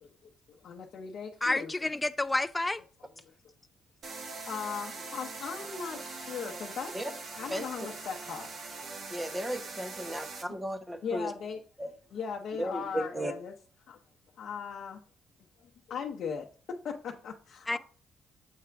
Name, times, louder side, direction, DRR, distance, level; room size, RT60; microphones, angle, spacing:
voice 1, 0.0-1.7 4.5-7.0 7.4-8.5 10.0-10.2 11.0-11.6 12.1-13.5 13.9-14.0 14.4-15.0 15.6-16.5 16.8-17.8, left 6 dB, 65° left, 0.8 m, -38 dB
voice 2, 1.4-2.8 17.7-17.8, left 2 dB, 15° left, 0.3 m, -29 dB
sound 1, 4.0-10.4, right 3 dB, 60° right, 1.6 m, -42 dB
voice 3, 9.1-11.3 11.8-11.9 12.6-13.3, equal, 15° right, 0.9 m, -35 dB
7.4 x 3.4 x 5.8 m
cardioid pair, 90°, 0 cm